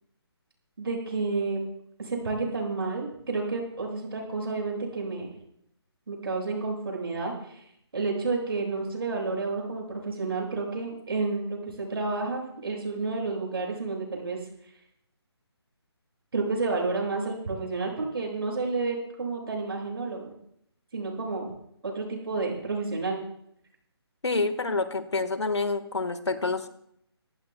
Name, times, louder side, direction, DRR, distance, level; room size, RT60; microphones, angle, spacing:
voice 1, 0.8-1.6 2.0-5.3 6.1-7.6 7.9-14.4 16.3-20.3 20.9-21.5 21.8-23.2, right 3 dB, 60° right, 0 dB, 7.2 m, -30 dB
voice 2, 24.2-26.7, left 3 dB, 80° left, 11 dB, 1.6 m, -28 dB
25.5 x 14.5 x 2.3 m, 0.70 s
figure-of-eight pair, 155°, 14 cm